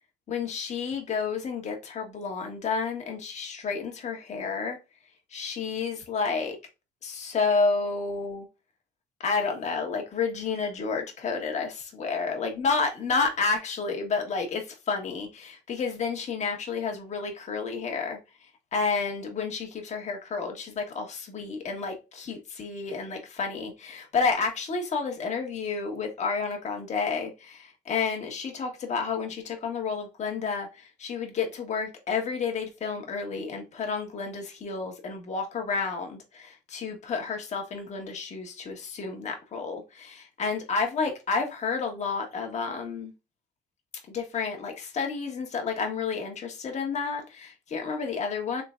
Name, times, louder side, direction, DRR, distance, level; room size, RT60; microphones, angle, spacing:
voice 1, 0.3-4.8 5.3-6.6 7.0-8.5 9.2-18.2 18.7-43.1 44.1-48.6, left 5 dB, 45° left, 1.3 m, -30 dB
3.7 x 3.3 x 2.4 m
cardioid pair, 110°, 17 cm